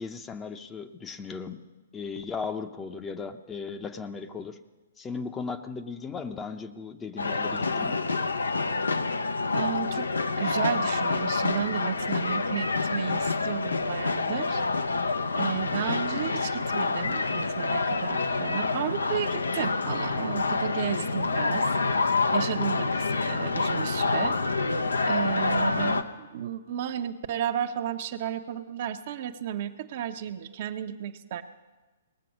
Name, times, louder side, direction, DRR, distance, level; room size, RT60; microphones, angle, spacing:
voice 1, 0.0-1.6 1.9-4.6 5.0-8.0, left 5 dB, 15° left, 7 dB, 0.7 m, -36 dB
sound 1, 7.2-26.0, left 3 dB, 80° left, 0.7 m, -27 dB
voice 2, 9.5-10.1 10.4-14.6 14.9-21.7 22.0-24.4 25.1-31.4, right 9 dB, 50° right, 8 dB, 0.7 m, -33 dB
19.0 x 7.6 x 6.2 m, 1.2 s
figure-of-eight pair, 125°, 0 cm